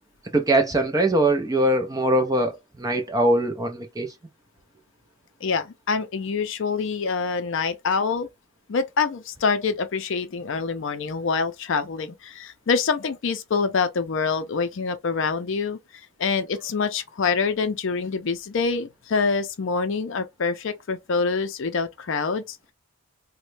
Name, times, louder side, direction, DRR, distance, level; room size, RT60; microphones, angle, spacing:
voice 1, 0.3-4.1, right 1 dB, 15° right, 0.4 m, -22 dB
voice 2, 5.4-8.3 8.7-15.8 16.2-22.7, left 5 dB, 55° left, 0.4 m, -26 dB
3.0 x 2.1 x 3.1 m
head